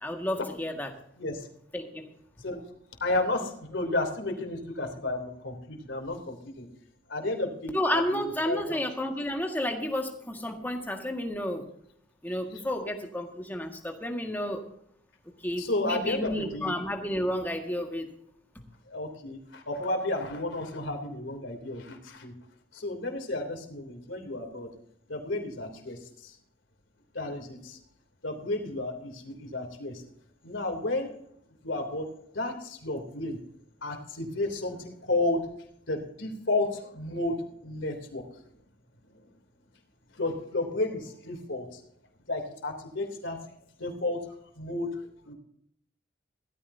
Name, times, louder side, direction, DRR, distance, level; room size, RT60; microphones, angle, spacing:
voice 1, 0.0-0.9 1.7-2.0 7.7-11.7 12.2-14.6 15.4-18.1, left 1 dB, 10° left, 3 dB, 1.8 m, -31 dB
voice 2, 1.2-1.5 2.4-2.6 3.0-6.7 7.1-8.8 15.6-16.7 18.9-22.3 22.7-24.7 25.1-26.3 27.1-27.8 28.2-30.0 30.4-31.1 31.6-32.1 32.3-33.4 33.8-35.5 35.9-38.2 40.1-41.8 42.3-43.4 43.8-45.3, left 2 dB, 80° left, 4 dB, 3.2 m, -32 dB
16.5 x 14.0 x 2.8 m, 0.70 s
head